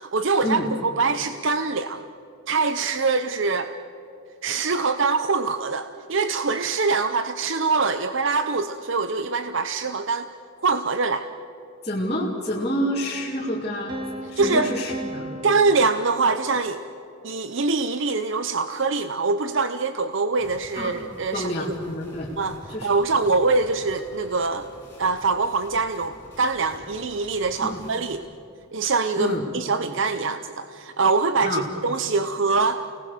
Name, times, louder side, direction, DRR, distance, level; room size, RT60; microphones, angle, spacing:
voice 1, 0.1-2.0 2.5-3.7 4.4-10.3 10.6-11.3 14.4-14.7 15.4-16.8 17.2-21.5 22.4-22.6 22.8-24.7 25.0-28.2 28.7-32.8, right 4 dB, 60° right, 9 dB, 0.7 m, -24 dB
voice 2, 11.8-14.0 14.3-15.4 20.7-21.0 21.3-22.3 22.7-22.9 27.6-27.9 29.1-29.5 31.4-31.7, equal, 30° left, -7 dB, 2.7 m, -28 dB
sound 1, 13.9-16.8, right 1 dB, 20° right, 1.9 m, -36 dB
sound 2, 20.4-28.2, equal, 10° left, 5.8 m, -46 dB
29.0 x 19.0 x 6.7 m, 2.8 s
head